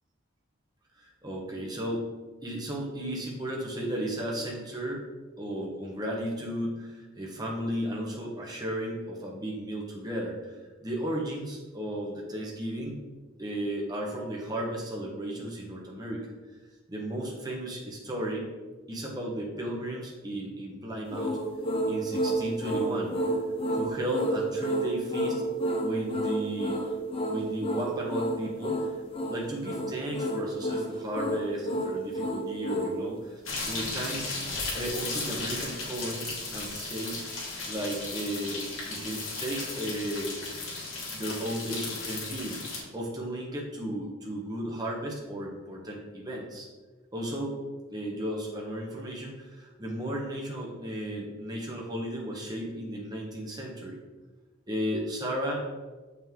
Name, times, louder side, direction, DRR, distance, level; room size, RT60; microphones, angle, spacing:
voice 1, 1.0-2.1 2.4-5.1 5.4-13.0 13.4-16.3 16.9-18.5 18.9-21.4 21.9-23.1 23.7-25.4 25.8-26.8 27.3-28.9 29.3-34.3 34.7-37.2 37.7-40.4 41.1-42.6 42.9-46.7 47.1-47.6 47.9-54.0 54.7-55.6, right 1 dB, 20° right, -2 dB, 1.3 m, -34 dB
sound 1, 21.1-33.0, right 1 dB, 25° left, 0.8 m, -30 dB
sound 2, 33.5-42.8, left 3 dB, 85° left, 2.1 m, -35 dB
6.5 x 5.9 x 3.7 m, 1.3 s
head